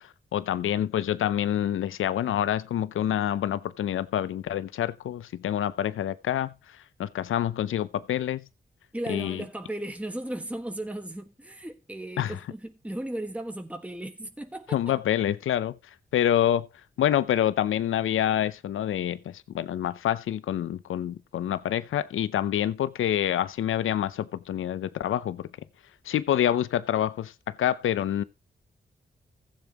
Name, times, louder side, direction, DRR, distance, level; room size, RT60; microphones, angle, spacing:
voice 1, 0.0-8.4 9.1-9.4 12.2-12.3 14.7-15.8 16.1-16.7 17.0-25.5 26.1-28.2, left 11 dB, 85° left, 0.6 m, -27 dB
voice 2, 8.9-14.9, right 1 dB, 5° right, 1.6 m, -36 dB
15.5 x 7.3 x 3.0 m
supercardioid pair, 40°, 20 cm